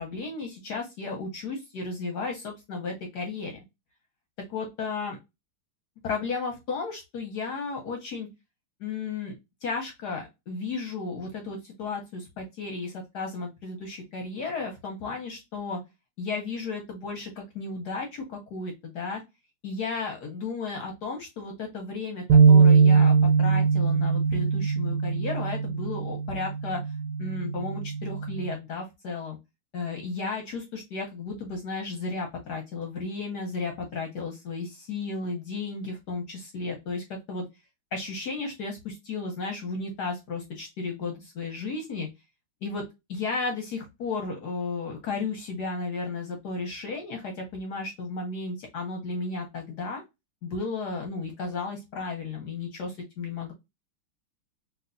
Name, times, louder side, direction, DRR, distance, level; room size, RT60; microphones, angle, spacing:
voice 1, 0.0-3.5 4.5-5.2 6.0-8.3 8.8-9.3 9.6-15.8 16.2-19.2 19.6-26.8 27.2-29.4 29.7-37.4 37.9-42.1 42.6-42.8 43.1-50.0 50.4-53.5, left 4 dB, 65° left, 2 dB, 1.1 m, -34 dB
sound 1, 22.3-28.5, right 5 dB, 90° right, 1.5 m, -21 dB
3.2 x 2.8 x 2.4 m, 0.22 s
omnidirectional pair, 2.4 m